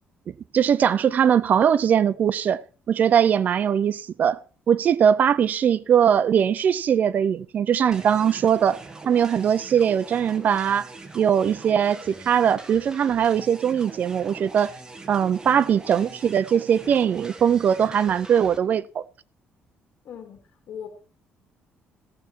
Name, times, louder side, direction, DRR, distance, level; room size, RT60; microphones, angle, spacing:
voice 1, 0.5-2.6 2.9-4.4 4.7-8.8 9.1-10.9 11.1-14.7 15.1-19.0, right 8 dB, 45° right, 0.5 m, -21 dB
sound 1, 7.9-18.6, right 3 dB, 20° right, 1.3 m, -42 dB
voice 2, 20.0-20.4 20.7-20.9, left 8 dB, 65° left, 2.5 m, -40 dB
15.5 x 7.0 x 4.6 m
cardioid pair, 130°, 4 cm